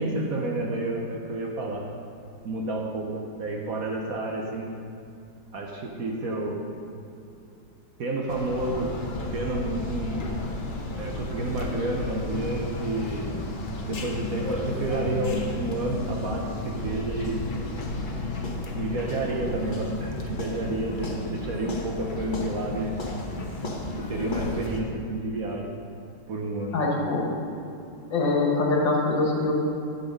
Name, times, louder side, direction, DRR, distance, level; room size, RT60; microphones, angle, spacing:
voice 1, 0.0-1.8 2.4-4.7 5.5-6.6 8.0-8.9 9.3-10.2 11.0-13.3 13.8-17.4 18.7-23.0 23.9-25.7 26.3-26.8, right 2 dB, 55° right, 0 dB, 1.2 m, -30 dB
sound 1, 8.3-24.8, left 2 dB, 40° left, 0.7 m, -33 dB
voice 2, 26.7-27.3 28.1-29.5, left 3 dB, 75° left, -2 dB, 2.3 m, -23 dB
10.5 x 7.2 x 5.2 m, 2.6 s
omnidirectional pair, 2.0 m